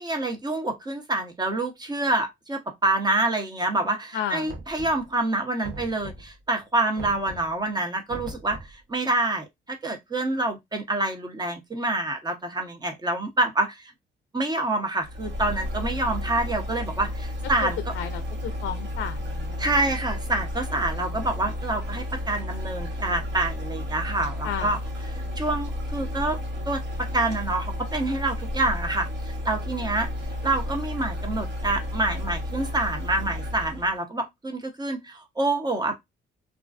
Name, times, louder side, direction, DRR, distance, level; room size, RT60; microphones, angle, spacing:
voice 1, 0.0-13.9 14.3-17.8 19.6-24.8 25.4-26.4 26.6-30.1 30.4-36.0, right 2 dB, 20° right, 0.7 m, -27 dB
voice 2, 4.1-4.5 17.6-17.7 17.9-19.9 21.0-21.2 24.4-24.7, left 9 dB, 70° left, 0.4 m, -33 dB
Knock, 4.5-5.2 5.6-6.4 7.0-7.6 8.1-8.8, right 2 dB, 85° right, 0.7 m, -40 dB
sound 1, 15.0-33.9, left 1 dB, 65° right, 1.2 m, -32 dB
2.4 x 2.3 x 2.3 m
cardioid pair, 90°, 20 cm